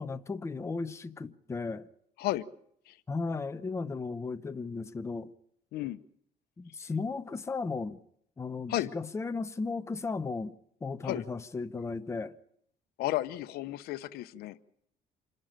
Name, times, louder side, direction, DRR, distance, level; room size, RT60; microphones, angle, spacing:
voice 1, 0.0-1.9 3.1-5.3 6.6-8.0 8.4-10.5 10.8-12.4, left 4 dB, 15° left, 0.8 m, -35 dB
voice 2, 13.0-14.6, left 15 dB, 80° left, 1.0 m, -33 dB
27.0 x 12.0 x 9.0 m
cardioid pair, 130°, 16 cm